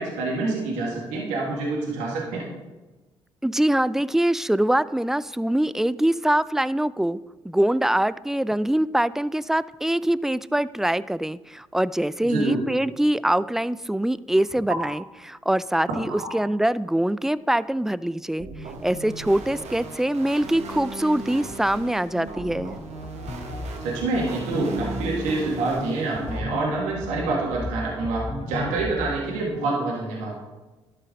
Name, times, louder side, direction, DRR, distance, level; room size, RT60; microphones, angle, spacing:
voice 1, 0.0-2.4 12.2-12.6 23.8-30.3, right 3 dB, 85° right, -3 dB, 1.9 m, -27 dB
voice 2, 3.4-7.2 7.4-18.5 18.8-22.8, right 1 dB, 5° right, 17 dB, 0.3 m, -23 dB
sound 1, 18.4-26.4, right 3 dB, 65° right, 1.4 m, -37 dB
sound 2, 23.0-29.2, left 2 dB, 40° left, 1.1 m, -35 dB
11.5 x 5.7 x 3.8 m, 1.1 s
hypercardioid pair, 50°, 12 cm